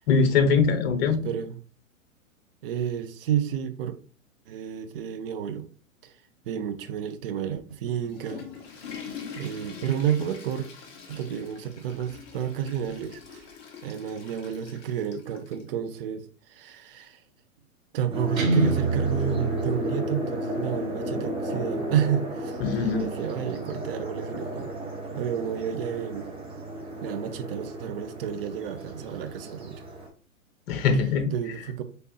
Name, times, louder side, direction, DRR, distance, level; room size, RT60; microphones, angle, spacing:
voice 1, 0.1-1.2 22.6-23.1 30.7-31.3, left 5 dB, 50° left, 0.9 m, -22 dB
voice 2, 1.1-1.6 2.6-4.0 4.5-5.7 6.0-6.1 6.4-8.4 9.4-10.7 11.1-13.5 13.8-17.2 17.9-24.7 25.1-26.3 27.0-29.8 31.3-31.8, right 9 dB, 45° right, 0.6 m, -30 dB
Water / Toilet flush, 7.9-15.7, left 6 dB, 15° left, 0.4 m, -44 dB
sound 1, 18.1-30.1, right 1 dB, 15° right, 0.9 m, -34 dB
Guitar, 18.4-20.4, right 2 dB, 80° right, 1.1 m, -27 dB
4.2 x 3.4 x 2.7 m
figure-of-eight pair, 110°, 40 cm